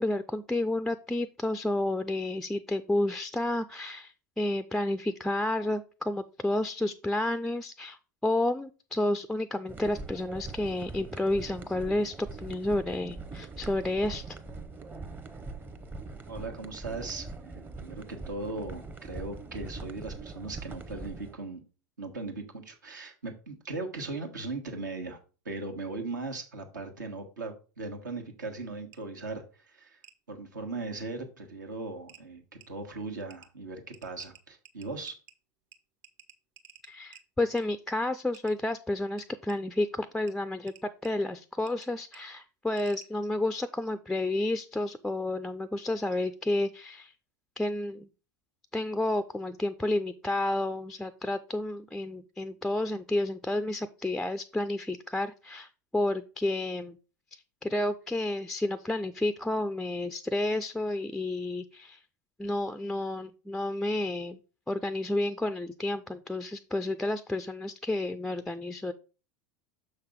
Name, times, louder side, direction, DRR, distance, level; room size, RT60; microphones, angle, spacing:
voice 1, 0.0-14.4 36.9-47.1 47.6-48.1 48.7-57.0 57.6-62.0 62.4-64.4 64.7-68.9, left 1 dB, 5° left, 11 dB, 0.4 m, -31 dB
sound 1, 9.7-21.3, right 3 dB, 20° right, 0.8 m, -42 dB
voice 2, 16.3-21.6 22.0-25.2 25.4-30.0 30.3-35.1, right 3 dB, 75° right, 4 dB, 1.4 m, -38 dB
sound 2, 28.9-29.0 30.0-30.2 31.5-31.6 32.1-32.2 32.6-32.7 33.3-33.5 33.9-35.3 35.7-35.8 36.0-37.2 37.6-37.7 38.3-38.5 39.2-39.6 40.3-40.4 40.7-41.1 41.7-41.9 42.1-42.2 42.8-43.1, right 7 dB, 50° right, 0.9 m, -53 dB
6.6 x 5.6 x 3.6 m, 0.34 s
figure-of-eight pair, 80°, 10 cm